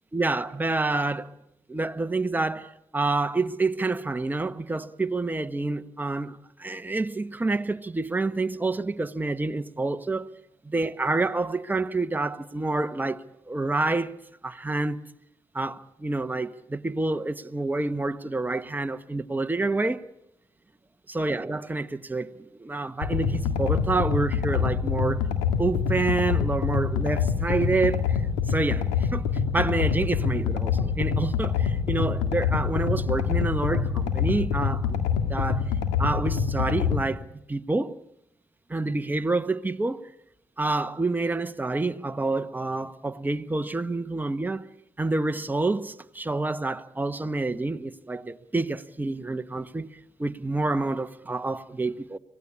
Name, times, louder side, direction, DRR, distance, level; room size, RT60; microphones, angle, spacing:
voice 1, 0.1-1.3 1.7-10.3 10.6-14.1 14.4-15.0 15.5-20.1 21.1-25.3 25.6-28.2 28.5-35.7 36.0-38.0 38.7-40.1 40.6-44.6 45.0-52.2, right 3 dB, 15° right, 1.4 m, -28 dB
sound 1, 23.0-37.0, left 6 dB, 90° left, 1.9 m, -26 dB
25.0 x 18.5 x 8.5 m
supercardioid pair, 50°, 10 cm